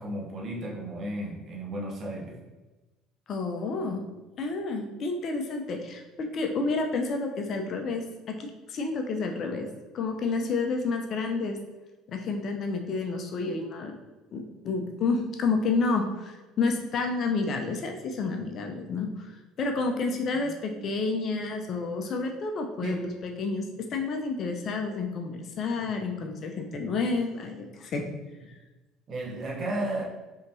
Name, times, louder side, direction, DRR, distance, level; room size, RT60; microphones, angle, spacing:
voice 1, 0.0-2.4 22.8-23.1 29.1-30.0, right 1 dB, 40° right, -1 dB, 0.9 m, -33 dB
voice 2, 3.3-4.0 4.4-9.7 9.9-11.6 12.1-14.0 14.3-19.3 19.6-23.6 23.9-28.1, left 3 dB, 40° left, 3 dB, 0.5 m, -30 dB
5.2 x 2.9 x 2.6 m, 1.2 s
figure-of-eight pair, 60°, 0 cm